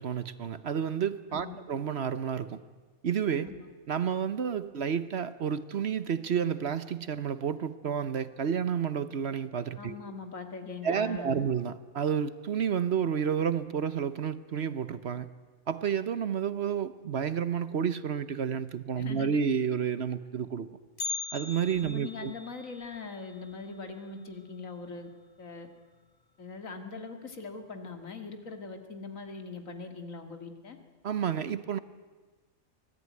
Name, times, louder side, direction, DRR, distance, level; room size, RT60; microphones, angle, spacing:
voice 1, 0.0-2.6 3.0-3.5 3.9-9.9 10.8-15.3 15.7-20.7 21.3-22.3 31.0-31.8, right 7 dB, 55° right, 1.1 m, -30 dB
voice 2, 9.8-11.5 19.0-19.4 21.8-25.1 25.4-25.7 26.4-30.8, left 4 dB, 80° left, 2.5 m, -41 dB
Bell, 21.0-25.1 25.3-25.4 25.9-26.0 26.8-26.9 27.7-28.0 28.3-28.4, left 4 dB, 25° left, 0.6 m, -41 dB
25.0 x 17.5 x 9.5 m
omnidirectional pair, 1.4 m